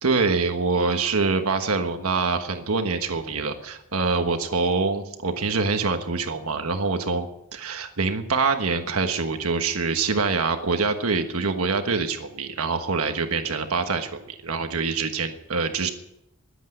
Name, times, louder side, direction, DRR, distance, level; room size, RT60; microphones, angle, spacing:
voice 1, 0.0-7.3 7.5-15.9, right 4 dB, 75° right, 6 dB, 1.3 m, -25 dB
21.0 x 8.3 x 7.9 m, 0.82 s
head